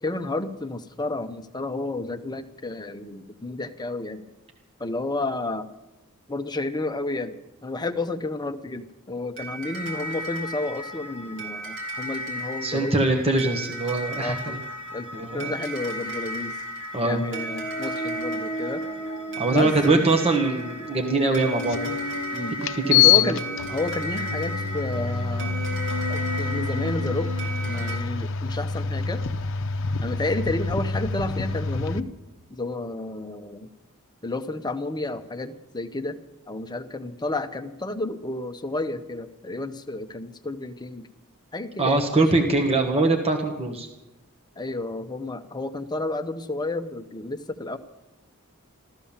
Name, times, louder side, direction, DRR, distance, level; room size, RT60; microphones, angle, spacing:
voice 1, 0.0-4.2 4.8-5.7 6.3-7.3 7.6-12.9 14.2-14.6 14.9-15.1 15.3-16.6 17.0-18.8 19.5-20.0 22.3-22.6 22.9-25.6 26.1-27.3 27.6-29.2 30.0-32.1 32.5-33.7 34.2-36.2 36.5-41.1 41.5-42.3 44.6-47.8, left 2 dB, 20° left, 8 dB, 0.8 m, -31 dB
sound 1, 9.4-28.0, equal, 60° right, 3.8 m, -33 dB
voice 2, 12.6-14.6 15.1-15.5 16.9-17.2 19.4-22.0 22.7-23.3 41.8-43.9, right 2 dB, 25° right, 3 dB, 1.4 m, -23 dB
sound 2, 21.7-21.8 22.6-32.0, left 7 dB, 60° left, 0.7 m, -26 dB
14.0 x 14.0 x 7.2 m, 0.97 s
head